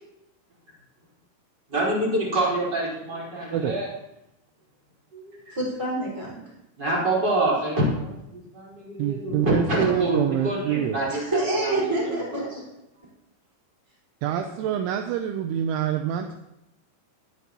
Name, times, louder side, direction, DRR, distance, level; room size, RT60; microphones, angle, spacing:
voice 1, 1.7-3.9 5.1-5.5 6.8-11.2 11.6-11.9 12.3-12.4, right 1 dB, 20° right, -5 dB, 4.8 m, -26 dB
voice 2, 5.5-6.4 11.1-12.6, right 2 dB, 5° right, -5 dB, 4.4 m, -27 dB
voice 3, 9.0-11.0 14.2-16.3, right 10 dB, 80° right, 6 dB, 3.0 m, -26 dB
20.5 x 11.5 x 3.0 m, 0.84 s
omnidirectional pair, 5.8 m